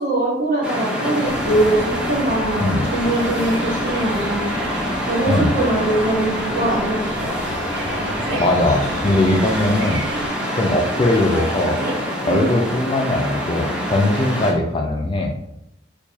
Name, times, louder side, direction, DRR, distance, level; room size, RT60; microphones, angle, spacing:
voice 1, 0.0-4.5 5.1-7.3 12.3-12.6, right 1 dB, 40° right, -5 dB, 1.4 m, -22 dB
sound 1, 0.6-14.5, equal, 5° right, 0.8 m, -25 dB
sound 2, 1.2-10.3, equal, 80° right, 0.9 m, -34 dB
Male speech man speaking, 7.8-8.6 11.1-12.0, right 2 dB, 60° right, 1.1 m, -30 dB
voice 2, 8.4-10.1 10.5-11.8 12.3-15.3, left 1 dB, 30° left, 2 dB, 0.4 m, -20 dB
4.5 x 2.3 x 2.7 m, 0.80 s
head